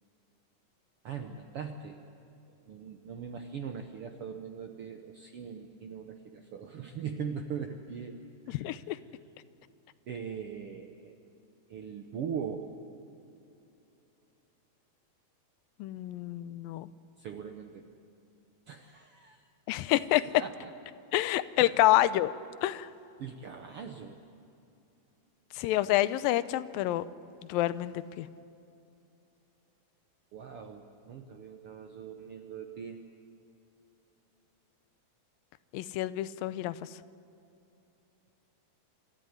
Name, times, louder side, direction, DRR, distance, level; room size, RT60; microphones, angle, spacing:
voice 1, 1.0-2.0 2.7-8.2 8.5-9.0 10.1-11.2 11.7-12.7 17.2-18.0 18.7-19.5 20.2-20.7 21.6-21.8 23.2-24.2 30.3-33.0, right 7 dB, 75° right, 5 dB, 1.3 m, -41 dB
voice 2, 8.5-9.0 15.8-16.9 19.7-20.3 21.1-22.3 22.6-22.9 25.6-27.0 27.5-28.3 35.7-36.8, left 15 dB, 90° left, 15 dB, 2.4 m, -28 dB
26.5 x 14.0 x 9.6 m, 2.7 s
omnidirectional pair, 4.0 m